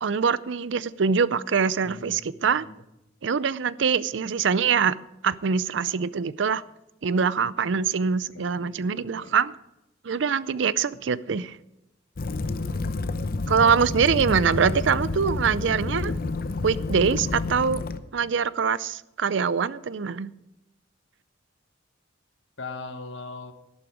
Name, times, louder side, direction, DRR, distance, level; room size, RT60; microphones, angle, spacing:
voice 1, 0.0-2.7 3.2-5.0 5.2-6.6 7.0-9.5 10.0-11.6 13.5-16.1 16.6-17.8 18.1-20.3, right 6 dB, 70° right, 18 dB, 0.5 m, -24 dB
voice 2, 8.3-9.3 22.6-23.5, left 3 dB, 80° left, 7 dB, 1.4 m, -40 dB
Waves surf / Splash splatter / Trickle dribble, 12.2-18.0, left 3 dB, 50° left, 0.7 m, -29 dB
12.5 x 11.5 x 4.9 m, 0.90 s
head